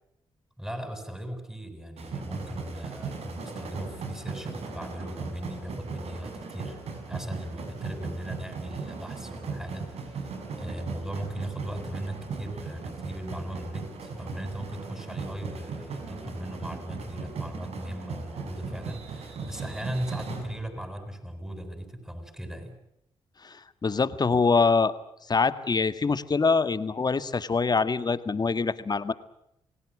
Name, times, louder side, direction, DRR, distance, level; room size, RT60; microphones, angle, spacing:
voice 1, 0.6-6.8 7.1-22.7, right 1 dB, 5° right, 8 dB, 7.9 m, -38 dB
sound 1, 2.0-21.0, right 4 dB, 70° right, 5.8 m, -38 dB
voice 2, 23.4-24.9 25.3-29.1, left 4 dB, 40° left, 13 dB, 1.8 m, -24 dB
28.0 x 17.5 x 9.9 m, 0.80 s
supercardioid pair, 55°, 11 cm